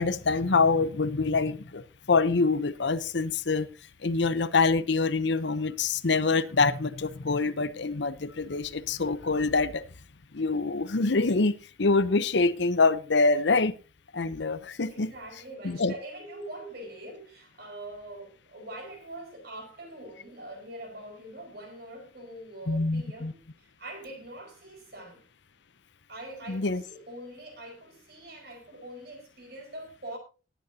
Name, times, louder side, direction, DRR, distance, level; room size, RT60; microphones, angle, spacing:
voice 1, 0.0-3.7 4.0-9.8 10.3-13.7 14.1-15.1 15.6-15.9 22.7-23.3 26.5-26.8, left 3 dB, 65° left, 15 dB, 0.8 m, -25 dB
voice 2, 14.9-23.4 23.8-25.2 26.1-30.2, right 1 dB, 55° right, 4 dB, 4.9 m, -43 dB
19.0 x 9.3 x 2.8 m, 0.32 s
head